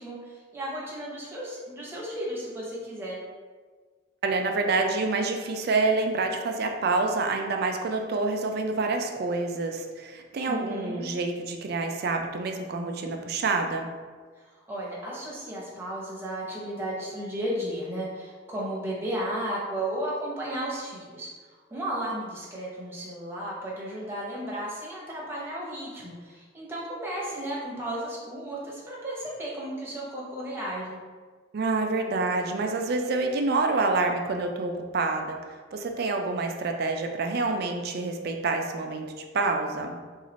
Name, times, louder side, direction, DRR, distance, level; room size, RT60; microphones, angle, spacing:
voice 1, 0.0-3.2 10.5-11.1 14.7-21.3 21.7-31.0, right 1 dB, 10° right, -6 dB, 0.8 m, -34 dB
voice 2, 4.2-13.9 31.5-35.4 35.7-40.0, right 3 dB, 55° right, 4 dB, 0.4 m, -27 dB
3.0 x 2.4 x 4.0 m, 1.5 s
head